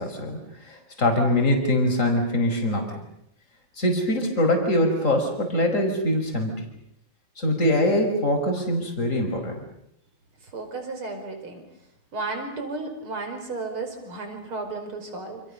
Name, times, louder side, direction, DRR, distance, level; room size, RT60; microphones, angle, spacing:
voice 1, 0.0-3.0 3.8-6.7 7.4-9.6, left 1 dB, 35° left, 4 dB, 5.5 m, -23 dB
voice 2, 10.4-11.6 12.1-15.4, right 3 dB, 85° right, 5 dB, 6.1 m, -33 dB
29.5 x 28.0 x 6.8 m, 0.76 s
omnidirectional pair, 2.3 m